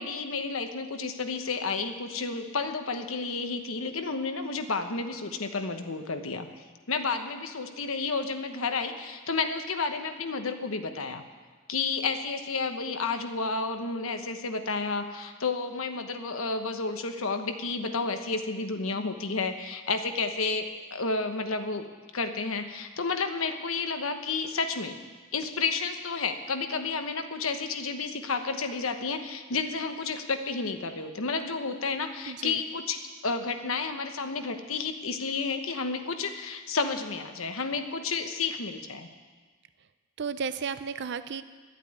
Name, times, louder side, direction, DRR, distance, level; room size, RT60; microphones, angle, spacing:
voice 1, 0.0-6.5 6.9-11.2 11.7-21.8 22.1-25.0 25.3-39.1, left 4 dB, 80° left, 7 dB, 1.1 m, -31 dB
voice 2, 32.3-32.6 40.2-41.4, right 6 dB, 55° right, 12 dB, 0.5 m, -33 dB
11.5 x 8.2 x 9.6 m, 1.4 s
head